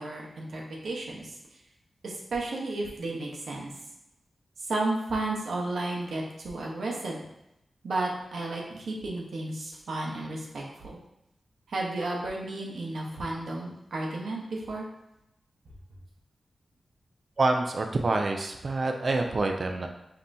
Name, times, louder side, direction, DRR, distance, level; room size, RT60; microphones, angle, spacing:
voice 1, 0.0-1.3 2.0-3.7 4.6-7.2 7.8-11.0 11.7-14.9, right 2 dB, 85° right, -2 dB, 0.9 m, -33 dB
voice 2, 17.4-19.9, right 2 dB, 50° right, 3 dB, 0.4 m, -27 dB
5.3 x 2.8 x 2.6 m, 0.85 s
wide cardioid pair, 105°, 0 cm